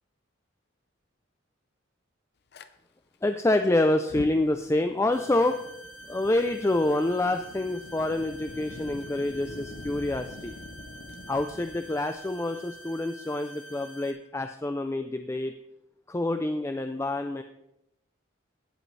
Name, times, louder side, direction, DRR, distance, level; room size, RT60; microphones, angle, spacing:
Fire, 2.5-2.7 3.9-13.0, left 2 dB, 55° left, 0.7 m, -45 dB
voice 1, 3.2-5.6 6.1-10.5 11.3-15.5 16.1-17.4, left 2 dB, 15° left, 7 dB, 0.4 m, -27 dB
sound 1, 5.1-14.1, right 1 dB, 75° left, 2.0 m, -47 dB
16.5 x 7.8 x 3.2 m, 0.83 s
head